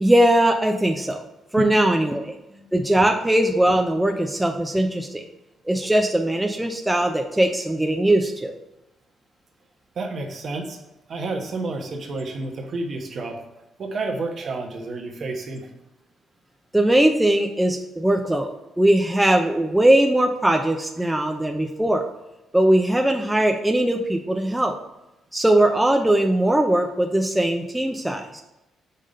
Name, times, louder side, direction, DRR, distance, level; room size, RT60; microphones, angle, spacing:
voice 1, 0.0-1.2 1.5-2.3 2.7-5.2 5.7-8.5 16.7-18.5 18.8-22.0 22.5-24.8 25.3-28.4, right 1 dB, 10° right, 3 dB, 0.5 m, -20 dB
voice 2, 10.0-10.8 11.1-13.4 13.8-15.7, right 3 dB, 55° right, 3 dB, 1.1 m, -30 dB
5.5 x 3.6 x 5.3 m, 0.95 s
cardioid pair, 90°, 0 cm